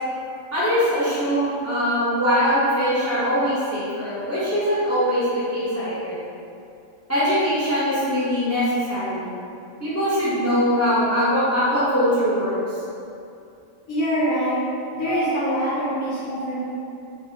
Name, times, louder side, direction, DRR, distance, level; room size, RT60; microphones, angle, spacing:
voice 1, 0.5-5.2 5.5-6.2 7.1-9.3 9.8-12.6 15.0-15.2 16.3-16.4, equal, 15° left, -12 dB, 0.6 m, -22 dB
voice 2, 13.9-14.6 14.9-16.6, equal, 85° left, -8 dB, 1.1 m, -24 dB
3.3 x 2.4 x 2.8 m, 2.6 s
omnidirectional pair, 1.4 m